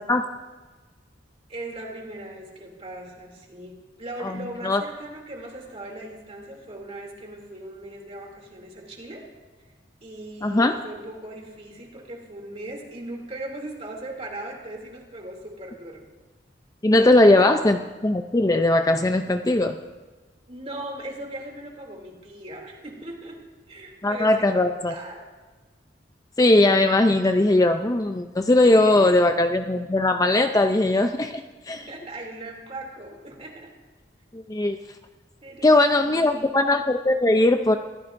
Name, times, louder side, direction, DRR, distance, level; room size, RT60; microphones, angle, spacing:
voice 1, 1.5-9.3 10.0-16.1 17.0-17.5 20.5-23.4 23.7-25.3 28.8-29.1 31.7-33.7 35.4-36.5, right 1 dB, 35° right, 0 dB, 2.8 m, -39 dB
voice 2, 4.2-4.8 10.4-10.8 16.8-19.8 24.0-24.9 26.4-31.4 31.7-31.8 34.3-34.8 35.6-37.8, left 2 dB, 20° left, 7 dB, 0.5 m, -19 dB
25.0 x 15.5 x 2.6 m, 1.3 s
head